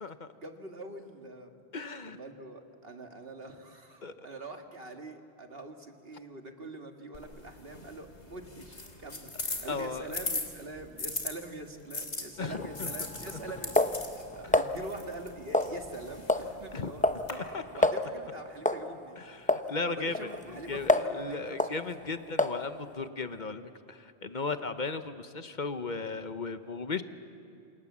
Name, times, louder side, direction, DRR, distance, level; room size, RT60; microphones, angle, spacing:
voice 1, 0.3-1.5 2.0-17.0 17.7-19.2 19.6-21.7, right 2 dB, 60° right, 4 dB, 2.1 m, -44 dB
voice 2, 1.7-2.2 4.0-4.3 9.7-10.1 12.4-12.9 13.3-13.4 14.4-14.6 16.7-16.9 17.3-17.9 19.2-27.0, left 4 dB, 45° left, 10 dB, 1.1 m, -36 dB
sound 1, 7.1-11.3 11.9-17.3, left 2 dB, 85° left, 3.2 m, -39 dB
sound 2, 12.4-14.7 15.5-16.0 16.3-16.5 16.8-17.2 17.5-17.6 17.8-18.0 18.6-18.9 19.5-19.7 20.1-21.2 21.6-21.8 22.4-22.6, left 1 dB, 10° left, 0.7 m, -28 dB
28.5 x 27.0 x 7.4 m, 2.7 s
omnidirectional pair, 1.1 m